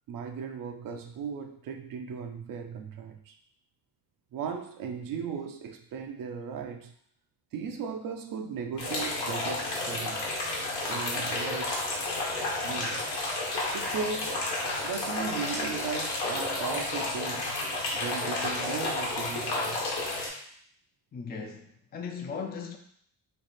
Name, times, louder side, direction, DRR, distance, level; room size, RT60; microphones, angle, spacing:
voice 1, 0.1-3.4 4.3-6.9 7.5-10.3 10.9-11.8 12.6-13.1 13.7-14.4 14.8-17.6 17.9-19.9, right 6 dB, 60° right, 5 dB, 0.6 m, -37 dB
sound 1, 8.8-20.3, left 2 dB, 80° left, 1.2 m, -31 dB
voice 2, 21.1-22.8, left 5 dB, 25° left, 4 dB, 0.5 m, -38 dB
3.3 x 2.4 x 4.1 m, 0.64 s
supercardioid pair, 75°, 39 cm